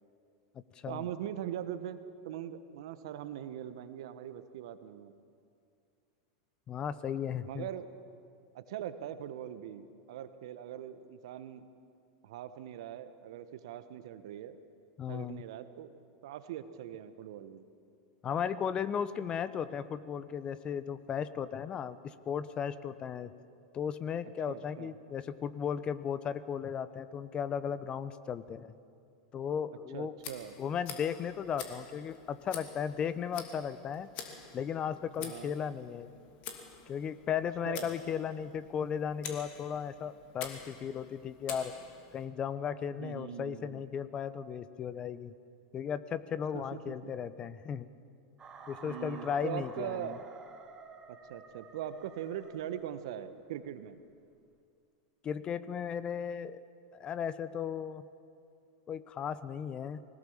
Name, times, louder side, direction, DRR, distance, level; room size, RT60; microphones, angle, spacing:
voice 1, 0.9-5.1 7.4-7.9 8.5-11.7 12.2-14.6 15.1-16.0 16.2-17.6 24.5-25.0 29.9-30.5 35.2-35.5 37.6-37.9 43.0-43.8 46.5-47.1 48.8-50.4 51.1-54.0, right 10 dB, 65° right, 11 dB, 1.2 m, -41 dB
voice 2, 6.7-7.7 15.0-15.4 18.2-23.3 23.7-28.7 29.3-30.1 30.6-34.1 34.5-36.1 36.9-41.7 42.1-45.3 45.7-47.9 48.7-50.2 55.2-56.6 56.9-58.1 58.9-60.1, left 8 dB, 30° left, 14 dB, 0.9 m, -36 dB
Tick, 30.2-42.3, left 7 dB, 50° left, 2.8 m, -48 dB
sound 1, 48.4-53.4, right 4 dB, 25° right, 2.5 m, -51 dB
21.5 x 19.0 x 7.4 m, 2.4 s
hypercardioid pair, 95°, 3 cm